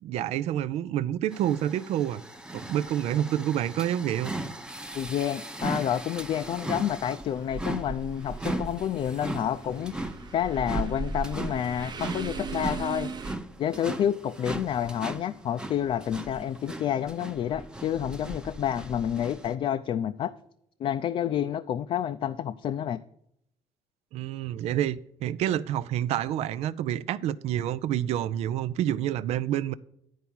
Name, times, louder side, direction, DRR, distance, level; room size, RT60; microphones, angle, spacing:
voice 1, 0.0-2.2 2.5-4.3 24.1-29.7, right 11 dB, 75° right, 0.5 m, -28 dB
sound 1, 1.3-19.5, right 1 dB, 5° right, 0.7 m, -38 dB
voice 2, 4.9-9.9 10.3-13.1 13.6-20.3 20.8-23.0, left 10 dB, 55° left, 0.4 m, -29 dB
sound 2, 7.3-13.3, right 3 dB, 40° right, 0.9 m, -37 dB
10.0 x 4.7 x 7.1 m
cardioid pair, 105°, 11 cm